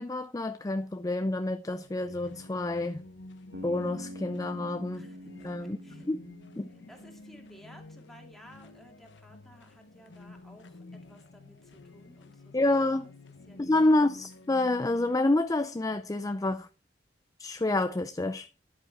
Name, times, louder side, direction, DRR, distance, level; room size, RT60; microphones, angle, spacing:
voice 1, 0.0-3.0 3.6-5.1 5.4-5.8 6.1-6.2 6.6-6.7 12.5-13.1 13.6-16.7 17.4-18.5, left 2 dB, 20° left, 0.5 m, -28 dB
sound 1, 1.8-15.2, left 2 dB, 75° left, 1.0 m, -51 dB
Bass guitar, 3.5-7.6, equal, 65° right, 1.4 m, -45 dB
voice 2, 4.9-6.1 6.9-13.1 13.5-13.7, equal, ahead, 2.5 m, -56 dB
10.5 x 8.7 x 4.6 m
head